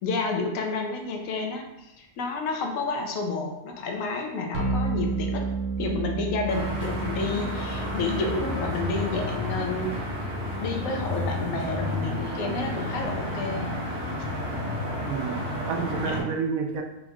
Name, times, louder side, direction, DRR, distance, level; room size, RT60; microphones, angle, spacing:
voice 1, 0.0-5.5 5.8-10.0 10.6-13.7 16.0-16.2, left 3 dB, 80° left, 2 dB, 1.0 m, -30 dB
sound 1, 4.5-14.6, right 3 dB, 60° right, 0.8 m, -34 dB
sound 2, 6.5-16.2, left 1 dB, 35° right, 1.2 m, -31 dB
voice 2, 15.1-16.8, right 5 dB, 85° right, 3 dB, 1.0 m, -29 dB
3.8 x 3.5 x 2.3 m, 0.89 s
omnidirectional pair, 1.4 m